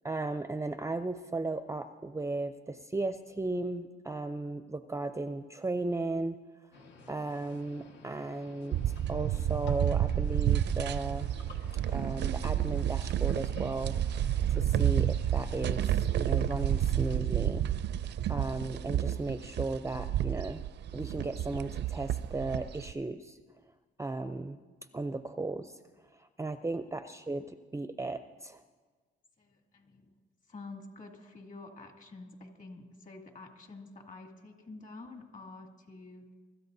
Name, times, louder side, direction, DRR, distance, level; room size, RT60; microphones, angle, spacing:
voice 1, 0.0-6.4 7.1-8.8 9.1-11.3 11.9-14.0 14.5-17.6 17.9-18.0 18.3-20.6 20.9-23.4 24.0-24.6 24.9-25.7 26.2-28.6, right 2 dB, 15° right, 10 dB, 0.5 m, -35 dB
sound 1, 6.7-17.2, left 4 dB, 70° left, 1.7 m, -53 dB
sound 2, 8.7-22.9, right 10 dB, 60° right, 0.5 m, -30 dB
voice 2, 29.4-30.2 30.5-36.3, left 3 dB, 40° left, 2 dB, 2.5 m, -48 dB
24.0 x 13.5 x 2.7 m, 1.4 s
cardioid pair, 90°, 20 cm